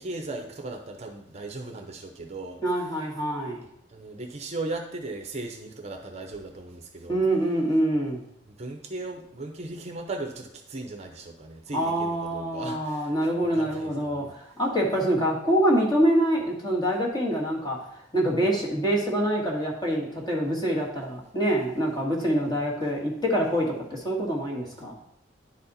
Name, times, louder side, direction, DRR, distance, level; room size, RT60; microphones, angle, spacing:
voice 1, 0.0-2.6 3.9-7.2 8.5-14.3, right 2 dB, 35° right, 3 dB, 0.7 m, -37 dB
voice 2, 2.6-3.6 7.1-8.2 11.7-17.8 18.1-24.9, right 1 dB, 20° left, -3 dB, 1.7 m, -25 dB
10.5 x 4.2 x 4.1 m, 0.75 s
head